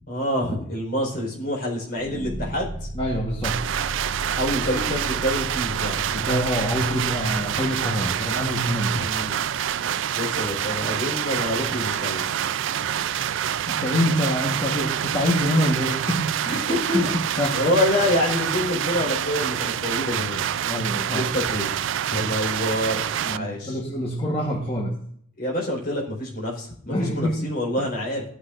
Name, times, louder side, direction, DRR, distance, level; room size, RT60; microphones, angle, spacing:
voice 1, 0.1-2.9 4.4-6.1 8.9-9.4 10.1-12.2 16.5-17.1 17.5-20.4 21.1-21.8 22.1-23.0 23.3-23.8 25.4-28.2, left 1 dB, 45° left, -2 dB, 4.4 m, -27 dB
sound 1, 2.0-11.1, right 1 dB, 25° right, 0.9 m, -37 dB
voice 2, 2.9-3.6 6.1-9.1 13.7-16.6 16.9-17.1 17.4-17.8 20.6-21.3 22.1-22.3 23.2-24.9 26.9-27.5, equal, 25° left, -1 dB, 1.3 m, -26 dB
sound 2, 3.4-23.4, right 9 dB, 60° right, 0.3 m, -27 dB
15.5 x 9.9 x 2.6 m, 0.65 s
head